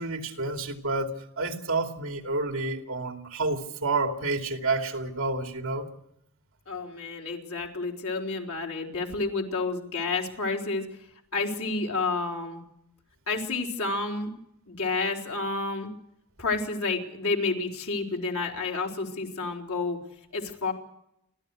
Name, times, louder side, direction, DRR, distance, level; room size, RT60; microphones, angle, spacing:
voice 1, 0.0-5.9, right 3 dB, 65° right, 2.7 m, -29 dB
voice 2, 6.7-10.9 11.3-12.6 13.3-14.3 14.7-15.9 16.4-20.0 20.3-20.7, left 3 dB, 85° left, 4.1 m, -30 dB
30.0 x 13.0 x 6.5 m
head